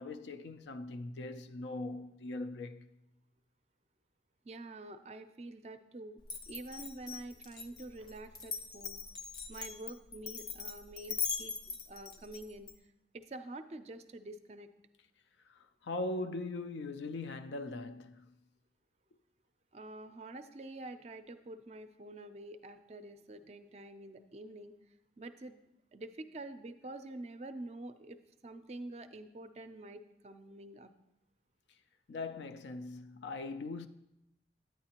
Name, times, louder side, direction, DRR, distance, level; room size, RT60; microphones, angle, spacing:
voice 1, 0.0-2.9 15.5-18.2 32.1-33.9, left 2 dB, 75° left, 0.4 m, -40 dB
voice 2, 4.4-6.2 6.5-9.0 9.5-12.7 13.1-14.7 19.7-24.7 25.2-25.6 25.9-30.9, right 2 dB, 35° right, 0.4 m, -47 dB
Glass, 6.2-12.7, left 6 dB, 25° left, 0.6 m, -40 dB
9.6 x 9.1 x 2.9 m
head